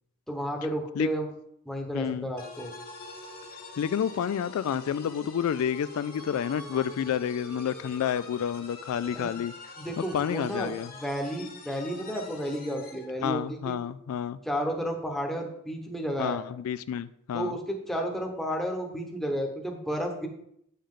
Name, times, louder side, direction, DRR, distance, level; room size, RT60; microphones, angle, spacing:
voice 1, 0.3-1.3 1.7-2.7 9.1-9.3 9.8-10.7 11.0-13.8 14.4-16.4 17.3-20.3, equal, ahead, 1 dB, 1.0 m, -32 dB
voice 2, 1.9-2.3 3.8-9.5 10.0-10.9 13.2-14.4 16.2-17.6, left 8 dB, 75° left, 14 dB, 0.3 m, -30 dB
sound 1, 2.4-13.1, left 2 dB, 45° left, 1.3 m, -45 dB
8.5 x 5.4 x 3.7 m, 0.73 s
head